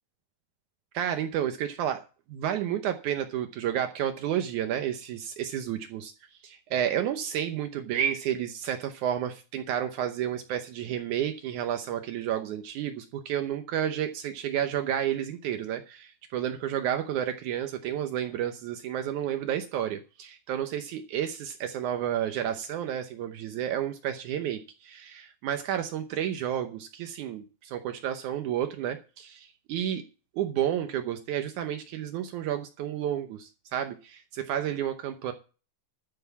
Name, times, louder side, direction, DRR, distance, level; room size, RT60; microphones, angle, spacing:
voice 1, 0.9-2.0 2.3-6.1 6.4-30.0 30.3-35.3, right 10 dB, 85° right, 7 dB, 1.7 m, -31 dB
13.0 x 5.8 x 7.1 m, 0.34 s
omnidirectional pair, 4.8 m